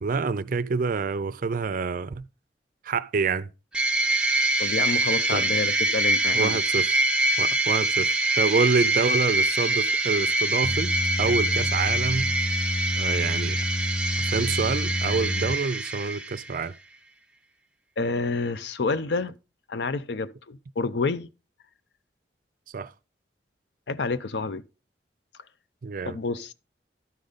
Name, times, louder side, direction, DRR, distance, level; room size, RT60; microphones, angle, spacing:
voice 1, 0.0-2.3 2.8-3.5 5.3-5.5 6.3-6.9 7.4-12.3 12.9-13.6 14.3-16.7 22.7-22.9 25.8-26.2, right 4 dB, 50° right, 0.4 m, -27 dB
sound 1, 3.7-16.6, right 2 dB, 5° right, 0.7 m, -25 dB
voice 2, 4.6-6.6 18.0-19.3 19.7-21.3 23.9-24.6 26.0-26.5, left 4 dB, 70° left, 0.5 m, -28 dB
sound 2, 10.6-15.5, left 1 dB, 15° left, 0.3 m, -29 dB
12.5 x 5.0 x 4.0 m
head